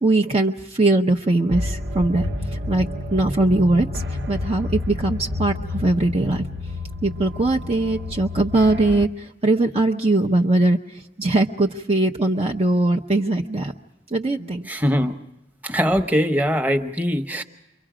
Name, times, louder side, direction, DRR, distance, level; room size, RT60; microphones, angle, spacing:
voice 1, 0.0-2.2 2.7-6.5 7.0-10.8 11.2-13.7 14.1-14.7, right 2 dB, 35° right, 3 dB, 0.7 m, -21 dB
sound 1, 1.5-9.1, left 2 dB, 80° right, 1.1 m, -29 dB
voice 2, 14.7-15.1 15.6-17.4, equal, 10° right, 4 dB, 1.0 m, -21 dB
29.5 x 23.5 x 5.0 m, 0.95 s
head